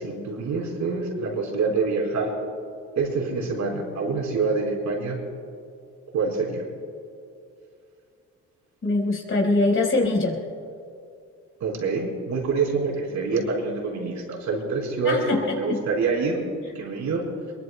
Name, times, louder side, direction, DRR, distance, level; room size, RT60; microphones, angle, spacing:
voice 1, 0.0-2.3 3.0-5.2 6.1-6.6 11.6-16.4 16.7-17.2, right 4 dB, 70° right, -1 dB, 4.6 m, -26 dB
voice 2, 8.8-10.4 15.0-15.8, left 2 dB, 45° left, -1 dB, 4.6 m, -23 dB
23.5 x 22.0 x 2.3 m, 2.5 s
cardioid pair, 90°, 30 cm